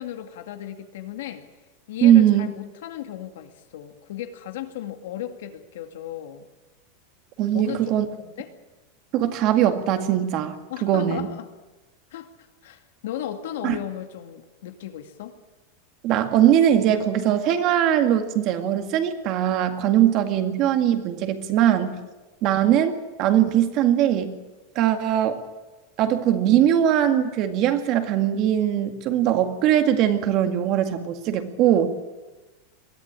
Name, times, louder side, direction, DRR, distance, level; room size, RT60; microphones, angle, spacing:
voice 1, 0.0-1.5 1.9-6.5 7.5-8.5 10.7-11.5 12.1-12.3 12.6-15.4 19.9-20.0, left 11 dB, 75° left, 7 dB, 2.3 m, -35 dB
voice 2, 2.0-2.5 7.4-8.1 9.1-10.6 10.8-11.3 13.6-13.8 16.0-22.0 22.4-24.4 24.8-25.4 26.0-31.9, right 11 dB, 40° right, 7 dB, 2.0 m, -20 dB
22.0 x 14.0 x 9.0 m, 1.1 s
supercardioid pair, 155°, 0 cm